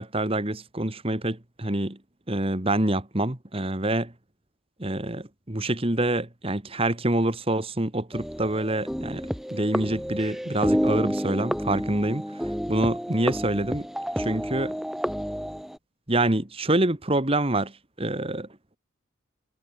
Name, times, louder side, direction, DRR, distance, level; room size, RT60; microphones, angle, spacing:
voice 1, 0.0-2.0 2.3-4.1 4.8-12.2 12.7-13.9 14.2-14.8 16.1-17.7 18.0-18.5, right 1 dB, 25° right, 1.7 m, -26 dB
sound 1, 8.1-15.8, equal, ahead, 2.1 m, -30 dB
head